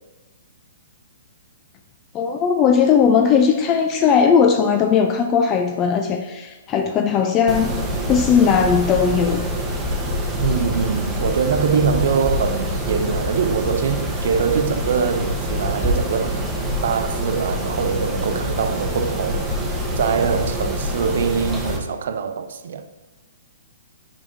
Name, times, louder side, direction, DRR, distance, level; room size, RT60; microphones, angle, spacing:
voice 1, 2.1-7.8 8.1-9.4, left 6 dB, 25° left, 0.4 m, -18 dB
Mechanisms, 7.5-21.8, equal, 10° right, 0.9 m, -25 dB
voice 2, 10.4-16.4 16.8-22.9, right 6 dB, 65° right, 0.5 m, -23 dB
7.3 x 5.0 x 2.6 m
hypercardioid pair, 140°, 0 cm